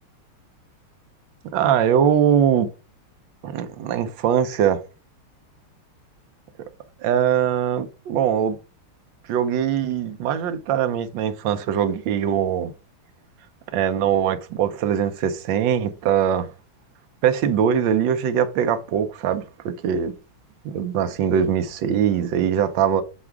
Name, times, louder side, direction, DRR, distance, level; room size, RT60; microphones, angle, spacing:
voice 1, 1.5-2.7 3.4-4.8 7.0-8.6 9.3-12.7 13.7-16.5 17.2-20.2 20.6-23.0, right 8 dB, 70° right, 1.3 m, -21 dB
7.2 x 3.5 x 4.6 m
omnidirectional pair, 2.3 m